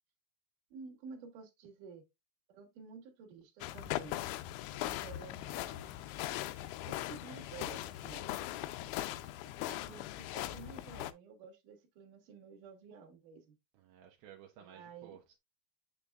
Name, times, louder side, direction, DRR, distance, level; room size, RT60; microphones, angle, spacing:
voice 1, 0.7-2.0 2.5-4.3 4.8-6.0 6.9-8.3 9.1-13.5 14.6-15.2, right 5 dB, 60° right, 2.5 m, -52 dB
sound 1, 3.6-11.1, left 15 dB, 85° left, 2.9 m, -40 dB
voice 2, 4.7-5.1 8.3-9.3 13.7-15.4, right 10 dB, 80° right, 2.2 m, -58 dB
sound 2, 5.4-10.6, left 7 dB, 55° left, 3.4 m, -62 dB
6.9 x 6.9 x 2.4 m
omnidirectional pair, 5.3 m